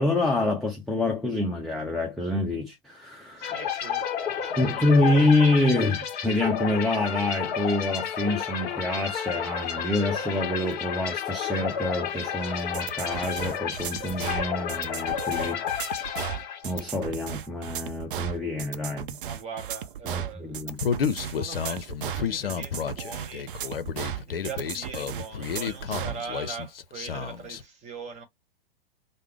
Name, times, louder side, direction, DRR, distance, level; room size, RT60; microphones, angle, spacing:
voice 1, 0.0-3.5 4.6-15.6 16.6-19.2 20.1-20.8, left 2 dB, ahead, 0.6 m, -26 dB
sound 1, 3.4-17.0, left 8 dB, 35° left, 1.5 m, -31 dB
voice 2, 3.4-4.1 4.3-5.2 19.2-20.6 21.1-23.5 24.2-28.2, right 5 dB, 25° right, 1.2 m, -41 dB
sound 2, 12.7-26.2, right 10 dB, 60° right, 0.5 m, -35 dB
Human voice, 20.8-27.6, left 7 dB, 75° left, 0.6 m, -31 dB
3.3 x 2.0 x 3.5 m
figure-of-eight pair, 105°, 30 cm